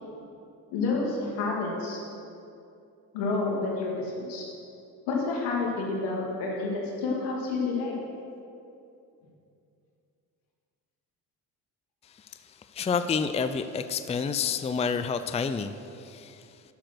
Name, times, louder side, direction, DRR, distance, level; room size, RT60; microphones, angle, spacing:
voice 1, 0.7-2.0 3.1-4.4 5.1-7.9, left 3 dB, 80° left, -2 dB, 2.4 m, -29 dB
voice 2, 12.7-16.5, left 6 dB, 15° left, 10 dB, 0.4 m, -29 dB
10.5 x 6.6 x 6.2 m, 2.6 s
supercardioid pair, 70°, 40 cm